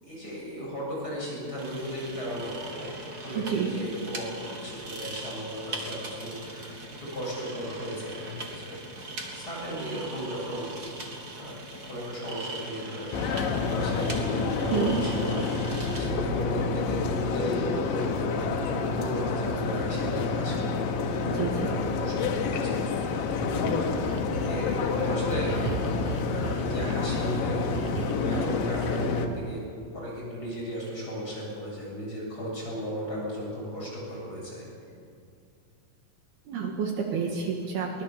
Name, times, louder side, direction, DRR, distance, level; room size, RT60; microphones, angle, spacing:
voice 1, 0.0-8.8 9.3-10.7 10.9-11.1 11.4-11.5 11.9-13.2 13.5-20.7 21.1-23.2 23.5-23.8 24.4-25.6 26.2-27.7 28.2-29.6 29.9-34.6, equal, 20° left, -5 dB, 7.8 m, -36 dB
sound 1, 1.6-16.1, right 2 dB, 30° right, 1.9 m, -40 dB
voice 2, 3.4-3.8 14.7-15.0 21.3-21.8 36.5-38.0, right 6 dB, 65° right, 1 dB, 3.5 m, -29 dB
sound 2, 13.1-29.3, left 4 dB, 90° left, 3.8 m, -28 dB
sound 3, 23.4-23.5 24.0-24.6 25.2-27.4 27.7-29.2, right 9 dB, 80° right, 1.8 m, -37 dB
23.0 x 19.5 x 7.3 m, 2.4 s
omnidirectional pair, 5.1 m